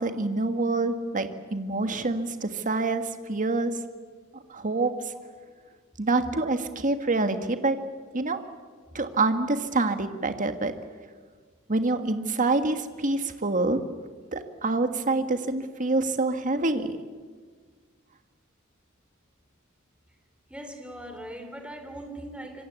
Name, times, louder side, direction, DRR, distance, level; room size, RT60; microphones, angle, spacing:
voice 1, 0.0-3.0 3.3-3.7 4.3-5.1 6.0-7.8 8.1-8.4 8.9-10.7 11.7-13.8 14.3-17.0, right 2 dB, 40° right, 8 dB, 1.8 m, -26 dB
voice 2, 20.5-22.6, right 1 dB, 5° right, 6 dB, 3.1 m, -41 dB
26.5 x 24.0 x 8.3 m, 1.5 s
head